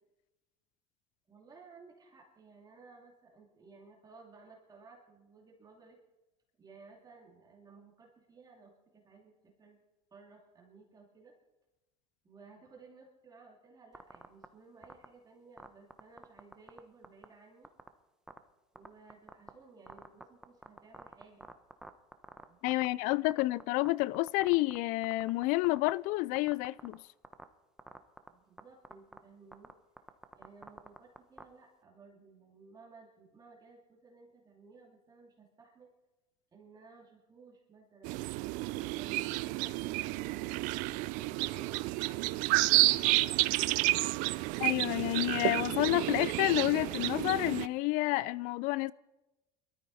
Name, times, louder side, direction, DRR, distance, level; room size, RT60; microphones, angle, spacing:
voice 1, 1.3-6.0 6.6-9.8 10.1-11.3 12.2-17.7 18.7-21.5 22.3-23.1 28.3-29.7 30.3-35.9 36.5-38.3 38.6-43.7, right 4 dB, 25° right, 2.7 m, -57 dB
sound 1, 13.9-14.4 14.8-15.0 15.6-16.8 17.0-17.2 17.6-17.9 18.3-18.4 18.7-19.5 19.9-22.9 23.1-23.9 24.1-24.8 25.0-25.9 26.3-26.9 27.2-27.4 27.8-28.3 28.6-28.7 28.8-29.2 29.5-29.7 30.0-31.4, right 1 dB, 5° right, 1.0 m, -47 dB
voice 2, 22.6-27.0 44.6-48.9, left 20 dB, 65° left, 0.4 m, -29 dB
sound 2, 38.0-47.7, right 20 dB, 70° right, 0.4 m, -30 dB
19.0 x 13.0 x 4.2 m
supercardioid pair, 105°, 14 cm